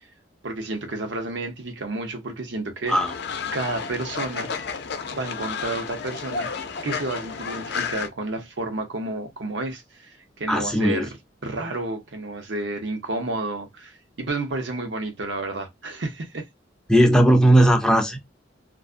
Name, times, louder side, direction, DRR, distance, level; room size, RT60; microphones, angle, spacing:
voice 1, 0.4-3.0 3.5-4.5 5.1-6.5 6.8-11.2 11.4-16.5, right 2 dB, 75° right, 0.8 m, -31 dB
Fowl, 2.9-8.1, left 5 dB, 65° left, 0.5 m, -31 dB
voice 2, 10.5-11.1 16.9-18.2, right 1 dB, 5° left, 0.5 m, -17 dB
2.4 x 2.2 x 2.4 m
head